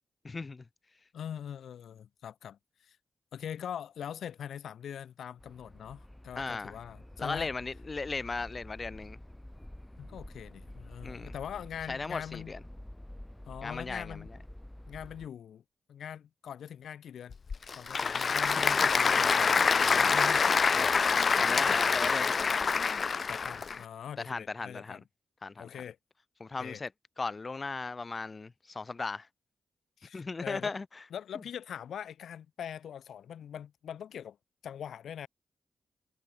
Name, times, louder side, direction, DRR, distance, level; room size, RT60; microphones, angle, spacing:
voice 1, 0.2-0.7 6.4-6.8 7.2-9.2 11.0-11.3 11.9-12.6 13.6-14.2 20.8-20.9 21.4-22.5 24.2-25.0 25.4-25.8 26.4-26.9 27.2-29.3 30.1-30.9 31.3-31.4, left 3 dB, 40° left, 1.8 m, -37 dB
voice 2, 1.1-3.0 3.3-7.5 10.0-12.5 13.5-14.3 14.9-15.6 15.9-17.4 17.7-20.5 23.3-25.0 25.6-26.0 26.6-26.8 30.0-30.8 31.1-34.4 34.6-35.3, left 9 dB, 85° left, 2.8 m, -42 dB
sound 1, 5.4-15.3, left 1 dB, 10° left, 5.2 m, -48 dB
Applause / Crowd, 17.3-23.8, left 5 dB, 55° left, 0.9 m, -26 dB
cardioid pair, 65°, 0 cm